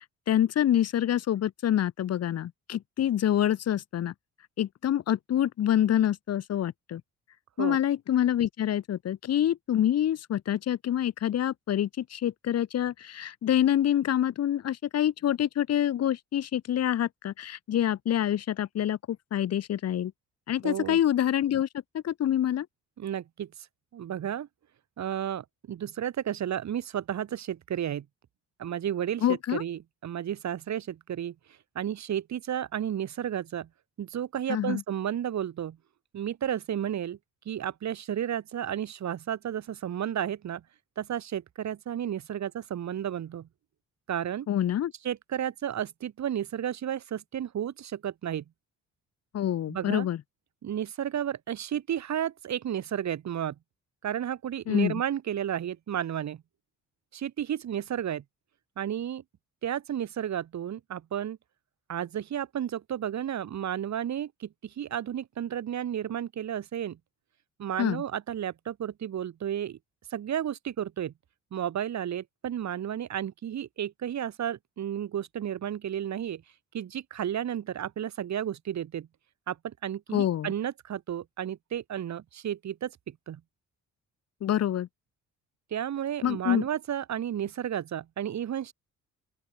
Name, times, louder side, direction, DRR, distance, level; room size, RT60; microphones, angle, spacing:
voice 1, 0.3-4.1 4.6-7.0 7.6-20.1 20.5-21.7 22.0-22.7 29.2-29.6 34.5-34.8 44.5-44.9 49.3-50.2 54.7-55.0 67.8-68.0 80.1-80.5 84.4-84.9 86.2-86.6, left 11 dB, 55° left, 1.0 m, -26 dB
voice 2, 20.6-21.0 23.0-23.5 23.9-24.5 25.0-28.1 28.6-31.3 31.7-33.7 34.0-35.8 36.1-37.2 37.5-40.6 41.0-43.5 44.1-44.5 45.0-48.4 49.7-50.1 50.6-53.5 54.0-56.4 57.1-58.2 58.8-59.2 59.6-61.4 61.9-67.0 67.6-69.8 70.1-71.1 71.5-76.4 76.7-79.1 79.5-83.4 85.7-88.7, right 10 dB, 65° right, 6.1 m, -32 dB
open air
cardioid pair, 90°, 30 cm